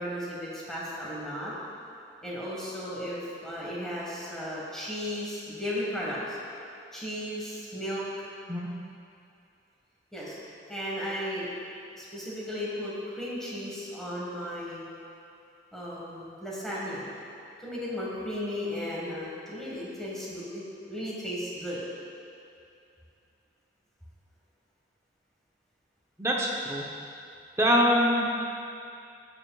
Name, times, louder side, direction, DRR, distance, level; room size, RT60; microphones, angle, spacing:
voice 1, 0.0-1.5 2.2-6.4 6.9-8.0 10.1-10.3 10.7-11.5 11.9-14.9 15.7-17.1 17.6-21.8, equal, 5° left, -7 dB, 1.5 m, -35 dB
voice 2, 26.2-26.8 27.6-28.2, equal, 15° right, -2 dB, 0.8 m, -24 dB
14.5 x 4.9 x 2.4 m, 2.5 s
head